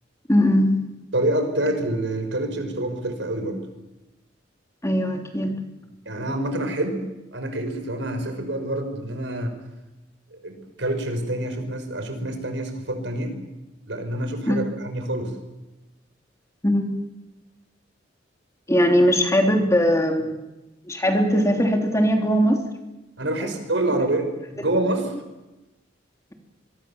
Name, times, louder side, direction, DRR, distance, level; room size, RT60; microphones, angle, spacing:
voice 1, 0.3-0.8 4.8-5.5 14.5-14.6 16.6-16.9 18.7-20.4 20.9-22.6 23.5-23.6, equal, 15° left, 3 dB, 3.2 m, -20 dB
voice 2, 1.1-3.6 6.1-7.1 7.3-9.5 10.3-13.3 13.9-15.3 23.2-25.1, right 1 dB, 75° right, 6 dB, 5.4 m, -27 dB
25.0 x 23.5 x 7.2 m, 1.0 s
head